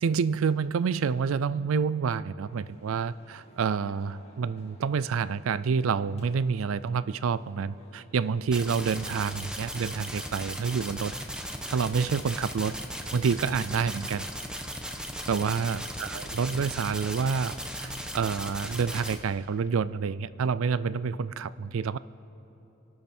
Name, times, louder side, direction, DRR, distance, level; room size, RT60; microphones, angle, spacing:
voice 1, 0.0-11.1 11.7-12.8 13.1-14.3 15.3-22.0, right 6 dB, 75° right, 17 dB, 0.4 m, -28 dB
sound 1, 2.4-18.5, left 1 dB, 30° left, 2.2 m, -59 dB
sound 2, 8.5-19.2, equal, 5° right, 1.1 m, -37 dB
27.5 x 12.0 x 4.4 m, 2.9 s
head